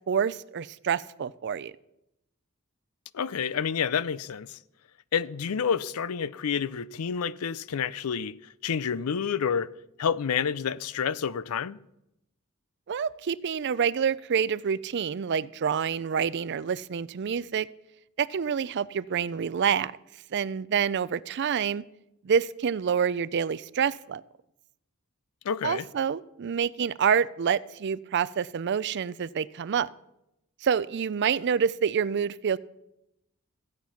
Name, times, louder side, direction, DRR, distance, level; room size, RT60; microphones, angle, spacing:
voice 1, 0.1-1.7 12.9-17.7 18.2-19.9 20.3-21.8 22.2-24.2 25.6-29.9 30.6-32.6, right 7 dB, 50° right, 0.4 m, -27 dB
voice 2, 3.1-4.6 5.1-8.3 8.6-9.7 10.0-11.8 25.4-25.9, left 7 dB, 85° left, 0.5 m, -29 dB
15.0 x 8.9 x 5.7 m
head